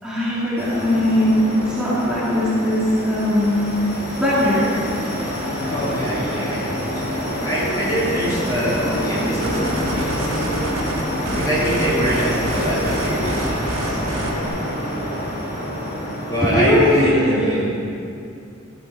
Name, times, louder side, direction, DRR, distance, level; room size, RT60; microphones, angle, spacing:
voice 1, 0.0-3.6 4.2-4.7 8.8-8.9 16.4-17.3, equal, 5° right, -11 dB, 2.7 m, -19 dB
sound 1, 0.6-17.0, equal, 50° left, 2.7 m, -27 dB
voice 2, 5.7-10.7 11.3-14.0 16.3-17.7, equal, 20° left, -9 dB, 2.9 m, -24 dB
sound 2, 9.4-14.5, right 1 dB, 75° right, 1.7 m, -29 dB
13.5 x 7.8 x 4.8 m, 2.6 s
head